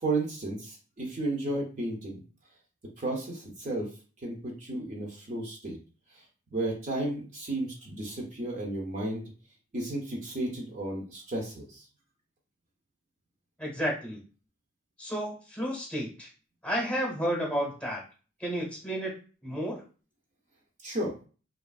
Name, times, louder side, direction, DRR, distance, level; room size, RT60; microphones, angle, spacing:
voice 1, 0.0-2.2 3.0-3.9 4.2-5.8 6.5-9.2 9.7-11.8 20.8-21.1, right 2 dB, 40° right, -2 dB, 0.6 m, -33 dB
voice 2, 13.6-14.2 15.0-16.3 16.6-18.0 18.4-19.1 19.4-19.8, equal, 5° left, -3 dB, 0.9 m, -31 dB
3.0 x 2.4 x 2.3 m, 0.37 s
head